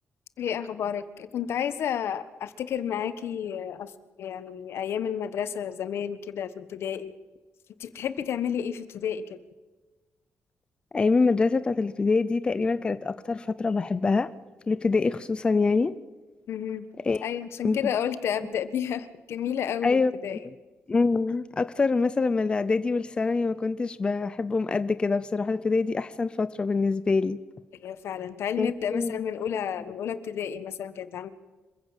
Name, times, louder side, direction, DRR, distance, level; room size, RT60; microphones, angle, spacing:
voice 1, 0.4-3.9 4.2-7.1 7.8-9.4 16.5-16.9 17.2-20.4 27.8-31.3, left 8 dB, 70° left, 13 dB, 1.4 m, -31 dB
voice 2, 10.9-14.3 14.7-15.9 17.0-17.3 17.6-17.9 19.8-20.1 20.9-27.4 28.6-29.2, left 4 dB, 20° left, 14 dB, 0.6 m, -25 dB
26.5 x 15.5 x 7.4 m, 1.2 s
wide cardioid pair, 170°, 4 cm